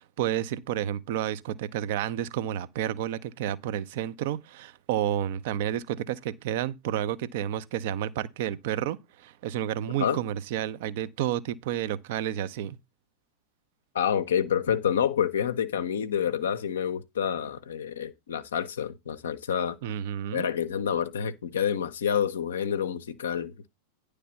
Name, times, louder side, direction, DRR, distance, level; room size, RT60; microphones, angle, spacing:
voice 1, 0.0-12.8 19.8-20.5, right 11 dB, 50° right, 0.6 m, -31 dB
voice 2, 13.9-19.8 20.3-23.7, left 8 dB, 65° left, 0.6 m, -28 dB
10.0 x 3.3 x 6.9 m
figure-of-eight pair, 90°, 0 cm